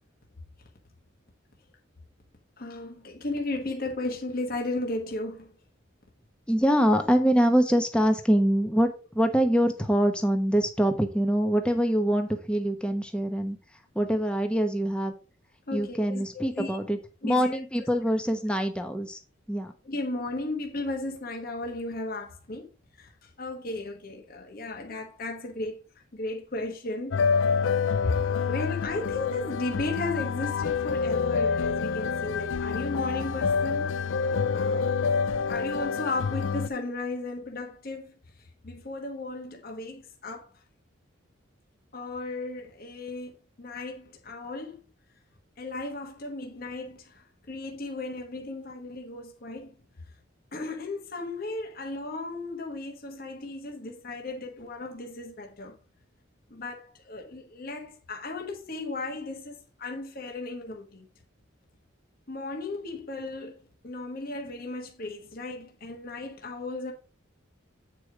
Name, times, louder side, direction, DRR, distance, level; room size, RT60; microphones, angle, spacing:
voice 1, 2.6-5.5 15.7-16.8 17.2-17.6 19.8-25.8 26.1-27.4 28.0-33.9 34.5-34.9 35.5-40.6 41.9-44.8 45.6-49.7 50.5-55.8 56.5-61.1 62.3-63.6 63.8-66.9, left 2 dB, 50° left, 1.3 m, -35 dB
voice 2, 6.5-13.6 13.9-15.1 15.7-19.2 19.5-19.7, equal, 5° left, 1.0 m, -24 dB
sound 1, 27.1-36.7, left 5 dB, 70° left, 0.4 m, -27 dB
8.4 x 4.8 x 4.9 m
head